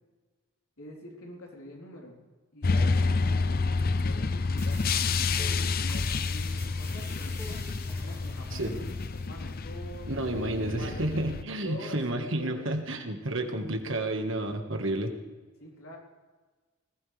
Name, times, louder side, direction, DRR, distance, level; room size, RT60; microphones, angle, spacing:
voice 1, 0.8-2.3 2.5-4.9 5.3-7.6 8.0-11.0 11.6-12.6 15.6-16.0, left 1 dB, 75° left, -2 dB, 4.2 m, -45 dB
sound 1, 2.6-11.4, left 4 dB, 40° left, 0.5 m, -29 dB
sound 2, 4.6-9.6, left 1 dB, 15° left, 2.2 m, -45 dB
voice 2, 10.1-15.1, right 1 dB, 60° right, 5 dB, 1.7 m, -31 dB
20.5 x 15.5 x 3.5 m, 1.3 s
head